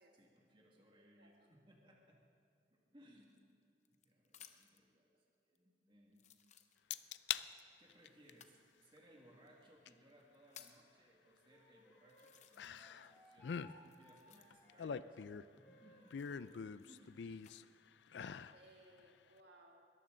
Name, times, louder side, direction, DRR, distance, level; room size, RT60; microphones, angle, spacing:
voice 1, 0.0-2.2 2.7-3.4 3.9-6.3 7.8-15.2 15.5-16.2 16.9-17.3, equal, 30° right, -1 dB, 2.0 m, -66 dB
voice 2, 0.8-1.5 18.5-19.9, right 1 dB, 70° right, 0 dB, 2.0 m, -65 dB
sound 1, 3.2-4.9 5.6-5.7 6.1-7.2 8.3-8.6 9.5-9.6 10.1-10.9 11.6-11.7 12.1-13.0 13.3-14.8 16.0-17.6 18.2-18.7, left 9 dB, 45° left, 0.8 m, -62 dB
sound 2, 6.9-7.5 7.9-8.3 9.9-10.0 12.6-13.1 13.4-13.7 14.5-15.6 16.1-17.6 18.1-18.6 19.0-19.1, left 8 dB, 85° left, 0.4 m, -43 dB
Wind instrument woodwind instrument, 11.5-16.5, equal, 10° left, 2.7 m, -65 dB
21.5 x 14.0 x 3.9 m, 2.4 s
head